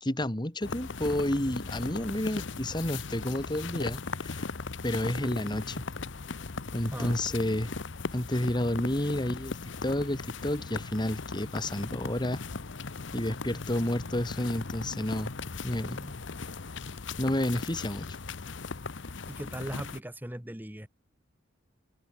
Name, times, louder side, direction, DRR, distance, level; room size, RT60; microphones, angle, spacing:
voice 1, 0.0-4.5 4.8-5.9 6.7-7.7 8.1-12.4 13.1-15.3 15.6-16.1 17.2-18.2, left 1 dB, 25° left, 2.2 m, -30 dB
sound 1, 0.6-20.0, left 4 dB, 65° left, 0.9 m, -38 dB
voice 2, 19.3-20.9, equal, 10° right, 1.4 m, -38 dB
head